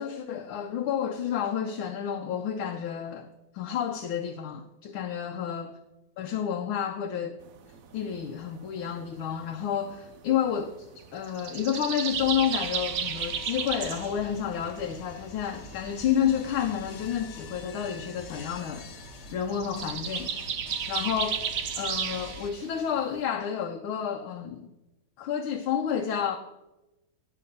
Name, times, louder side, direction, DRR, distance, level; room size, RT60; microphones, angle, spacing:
voice 1, 0.0-3.3 3.5-5.7 6.2-7.4 7.9-18.9 19.3-20.4 20.9-21.5 21.8-24.7 25.2-26.4, left 9 dB, 85° left, 1.5 m, -30 dB
sound 1, 7.4-23.2, right 7 dB, 65° right, 0.8 m, -35 dB
sound 2, 12.1-22.5, left 3 dB, 60° left, 0.7 m, -45 dB
12.5 x 6.1 x 5.3 m
omnidirectional pair, 2.2 m